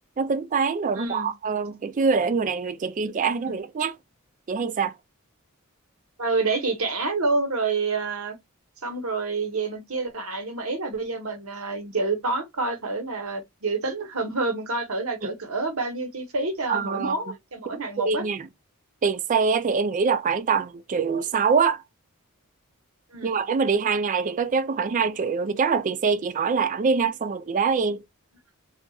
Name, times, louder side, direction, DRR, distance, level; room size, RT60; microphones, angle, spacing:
voice 1, 0.2-4.0 4.5-4.9 15.2-15.3 16.7-17.1 18.0-18.5 19.0-21.8 23.2-28.0, right 5 dB, 35° right, 0.3 m, -24 dB
voice 2, 0.9-1.3 3.5-3.6 6.2-8.4 8.8-18.2 23.1-23.4, right 3 dB, 70° right, 1.0 m, -28 dB
4.0 x 2.4 x 2.3 m
head